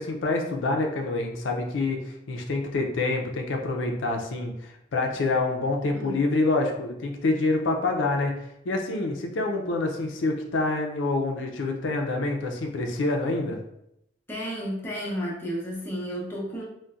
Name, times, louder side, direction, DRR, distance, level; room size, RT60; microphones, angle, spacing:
voice 1, 0.0-8.3 8.7-13.6, left 2 dB, 85° left, 2 dB, 0.4 m, -27 dB
voice 2, 14.3-16.6, equal, 15° left, -5 dB, 0.7 m, -32 dB
3.8 x 2.1 x 2.3 m, 0.79 s
head